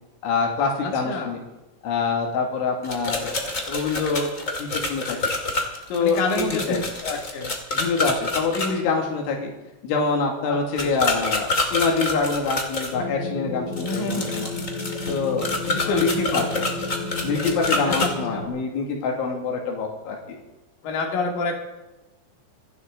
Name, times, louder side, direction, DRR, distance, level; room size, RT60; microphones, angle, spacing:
voice 1, 0.2-1.4 1.8-3.3 3.7-4.3 4.6-5.2 5.9-6.8 7.7-9.5 9.8-14.5 15.1-16.6 17.2-20.4, left 4 dB, 90° left, 0 dB, 4.8 m, -25 dB
voice 2, 0.8-1.4 6.0-7.5 10.5-11.0 13.8-14.3 15.8-16.5 17.9-18.4 20.8-21.5, left 3 dB, 55° left, 1 dB, 4.0 m, -29 dB
sound 1, 2.8-8.7 10.8-12.9 13.7-18.1, left 2 dB, 30° left, 1.6 m, -27 dB
sound 2, 12.9-18.5, left 3 dB, 70° left, 3.6 m, -32 dB
26.5 x 12.0 x 3.9 m, 1.1 s
omnidirectional pair, 5.3 m